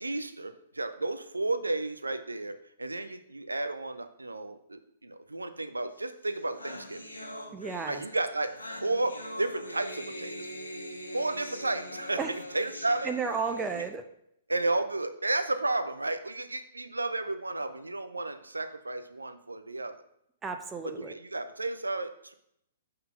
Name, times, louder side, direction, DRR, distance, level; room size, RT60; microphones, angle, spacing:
voice 1, 0.0-7.1 7.9-10.5 11.1-12.2 12.5-13.1 13.7-13.8 14.5-20.0 21.0-22.3, right 2 dB, 80° right, 9 dB, 0.5 m, -32 dB
sound 1, 6.0-6.1 6.3-13.9, left 1 dB, 80° left, 0.9 m, -43 dB
voice 2, 7.5-8.0 12.2-12.3 13.0-14.0 20.4-21.1, right 5 dB, 10° right, 6 dB, 0.4 m, -33 dB
5.5 x 3.8 x 5.6 m, 0.75 s
figure-of-eight pair, 115°, 0 cm